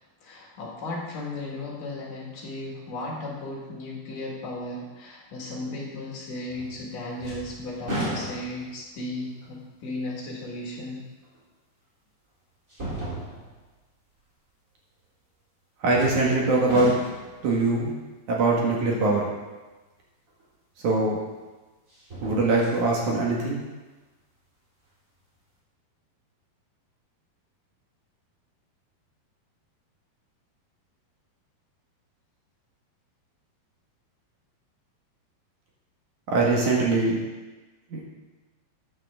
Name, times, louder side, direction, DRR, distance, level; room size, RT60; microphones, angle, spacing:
voice 1, 0.2-11.0, left 2 dB, 60° left, -3 dB, 3.3 m, -35 dB
sound 1, 6.5-6.9 7.2-8.8 9.4-9.5 11.3-11.4 12.7-13.6 15.9-16.4 16.7-17.4 20.4-20.5 21.9-22.8 23.2-23.3, right 1 dB, 20° right, 3.5 m, -34 dB
voice 2, 15.8-16.9 17.4-17.9 18.3-19.3 20.8-21.2 22.2-23.6 36.3-37.2 37.9-38.0, right 3 dB, 55° right, -3 dB, 2.8 m, -22 dB
14.0 x 9.9 x 3.7 m, 1.2 s
omnidirectional pair, 4.5 m